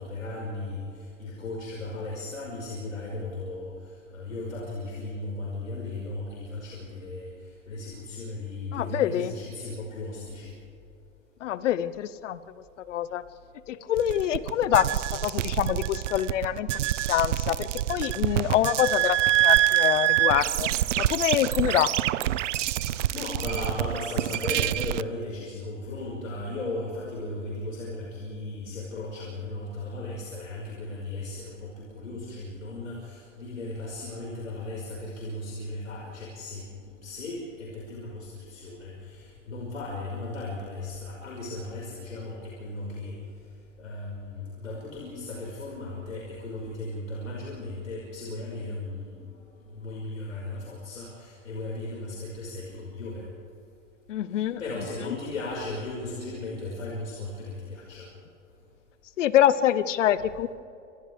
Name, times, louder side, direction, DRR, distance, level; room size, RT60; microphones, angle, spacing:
voice 1, 0.0-10.5 22.8-36.7 37.0-43.2 43.8-49.2 49.6-53.3 54.3-58.1, left 2 dB, 85° left, -3 dB, 5.3 m, -36 dB
voice 2, 8.7-9.3 11.4-12.4 12.8-13.2 13.7-20.7 21.0-21.9 54.1-54.6 59.2-60.5, left 11 dB, 70° left, 15 dB, 1.1 m, -25 dB
sound 1, 14.0-25.0, right 13 dB, 70° right, 0.8 m, -26 dB
30.0 x 27.5 x 3.5 m, 2.7 s
hypercardioid pair, 100°, 38 cm